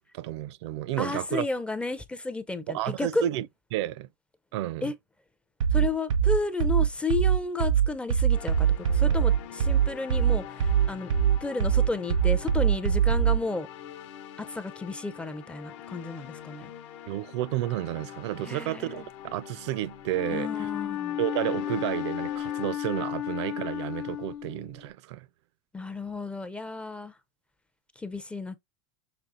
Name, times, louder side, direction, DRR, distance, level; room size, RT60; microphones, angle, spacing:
voice 1, 0.1-1.5 2.7-3.5 3.7-4.1 4.5-4.9 17.1-20.7 21.2-25.3, right 14 dB, 65° right, 0.4 m, -31 dB
voice 2, 1.0-3.2 4.8-4.9 5.7-11.1 11.4-13.7 14.4-16.7 18.4-19.0 20.3-21.2 25.7-27.1 28.0-28.6, left 3 dB, 5° left, 0.4 m, -32 dB
sound 1, 5.6-13.4, right 8 dB, 90° right, 1.0 m, -22 dB
sound 2, 8.3-22.7, left 10 dB, 75° left, 1.0 m, -45 dB
Wind instrument woodwind instrument, 20.1-24.9, left 11 dB, 55° left, 0.6 m, -33 dB
6.0 x 3.1 x 2.5 m
supercardioid pair, 140°, 16 cm